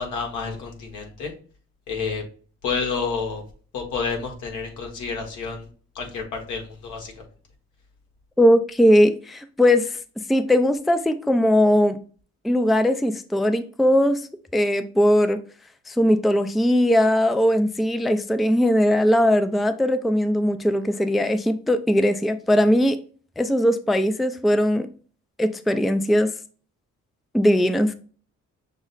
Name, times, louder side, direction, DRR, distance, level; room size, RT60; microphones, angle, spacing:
voice 1, 0.0-1.3 1.9-2.2 2.6-3.4 3.7-5.6 5.9-7.1, left 5 dB, 85° left, 1.4 m, -29 dB
voice 2, 8.4-10.0 10.3-12.0 12.4-14.3 14.5-15.4 15.9-23.0 23.4-24.9 25.4-26.3 27.3-27.9, equal, ahead, 0.3 m, -19 dB
6.1 x 2.1 x 3.9 m
cardioid pair, 90°, 30 cm